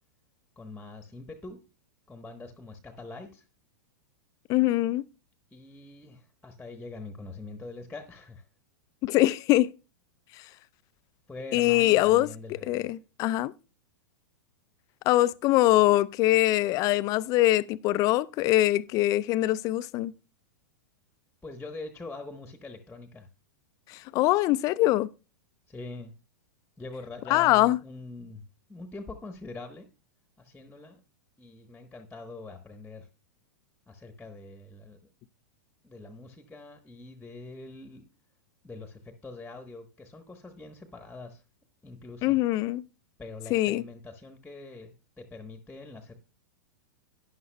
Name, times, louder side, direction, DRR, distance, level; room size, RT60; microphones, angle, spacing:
voice 1, 0.6-1.6 2.1-3.4 5.5-8.4 11.3-12.9 21.4-23.3 25.7-26.1 26.8-28.4 28.7-29.9 30.4-31.0 31.4-33.1 33.9-35.0 35.8-38.0 38.6-41.4 41.8-42.3 43.2-46.1, left 3 dB, 5° left, 1.1 m, -43 dB
voice 2, 4.5-5.0 9.0-9.7 11.5-12.3 12.7-13.5 15.1-20.1 23.9-25.1 27.3-27.8 42.2-42.8 43.5-43.8, left 16 dB, 35° left, 0.4 m, -23 dB
12.5 x 9.5 x 2.2 m
hypercardioid pair, 100°, 10 cm